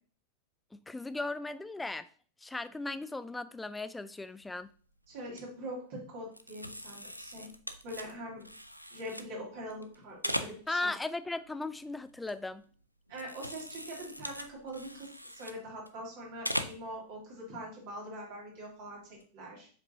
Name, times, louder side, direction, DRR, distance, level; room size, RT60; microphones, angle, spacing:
voice 1, 0.7-2.1 2.4-4.7 10.7-12.6, left 2 dB, 10° left, 0.4 m, -37 dB
sound 1, 4.4-4.7 5.1-5.4 6.3-9.3 9.7-11.0 11.3-12.7 13.1-16.1 16.4-16.9 17.3-17.4 19.0-19.2, equal, 90° left, 0.4 m, -40 dB
voice 2, 5.1-7.5 7.8-8.4 8.9-10.9 13.1-19.7, right 1 dB, 50° right, 2.7 m, -43 dB
7.2 x 5.2 x 2.7 m
figure-of-eight pair, 90°, 0 cm